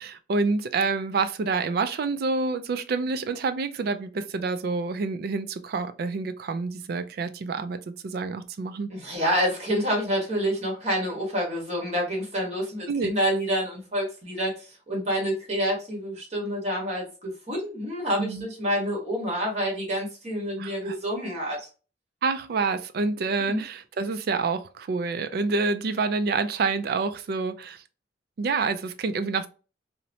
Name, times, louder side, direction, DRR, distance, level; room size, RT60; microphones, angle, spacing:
voice 1, 0.0-9.1 12.9-13.1 18.2-18.5 20.6-21.0 22.2-27.8 28.4-29.5, right 4 dB, 60° right, 0.3 m, -28 dB
voice 2, 8.9-14.5 14.9-21.7 23.4-23.6, equal, 40° right, 1.3 m, -28 dB
2.9 x 2.1 x 2.6 m
head